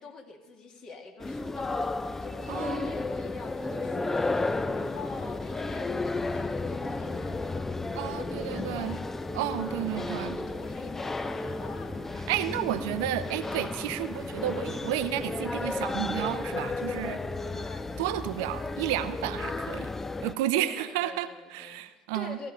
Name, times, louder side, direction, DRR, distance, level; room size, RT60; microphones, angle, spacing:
voice 1, 0.0-7.7 8.0-9.0 9.6-11.9 17.5-17.9 20.5-21.8 22.1-22.5, left 3 dB, 40° left, 2 dB, 2.0 m, -45 dB
sound 1, 1.2-20.3, left 3 dB, 15° left, 0.5 m, -33 dB
voice 2, 2.5-3.0 7.9-9.0 9.3-10.4 12.3-17.2 18.0-19.9 20.2-22.4, right 13 dB, 60° right, 12 dB, 0.6 m, -32 dB
sound 2, 2.9-20.1, left 3 dB, 65° left, 4.2 m, -54 dB
sound 3, 3.6-19.8, equal, ahead, 1.7 m, -43 dB
15.5 x 13.0 x 5.3 m, 1.2 s
figure-of-eight pair, 60°, 2 cm